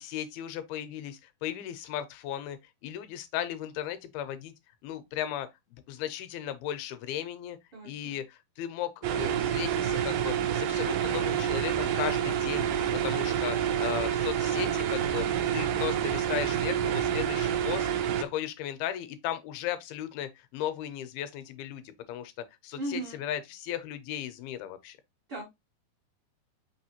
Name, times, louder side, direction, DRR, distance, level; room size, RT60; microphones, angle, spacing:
voice 1, 0.0-2.6 2.8-4.5 4.8-7.6 7.8-12.7 13.0-15.3 15.5-17.9 18.2-22.3 22.6-25.0, left 11 dB, 85° left, 2.4 m, -36 dB
voice 2, 7.7-8.2 22.8-23.2 25.3-25.4, right 2 dB, 65° right, 1.2 m, -36 dB
sound 1, 9.0-18.2, right 9 dB, 90° right, 1.8 m, -28 dB
5.5 x 3.0 x 2.8 m
omnidirectional pair, 4.4 m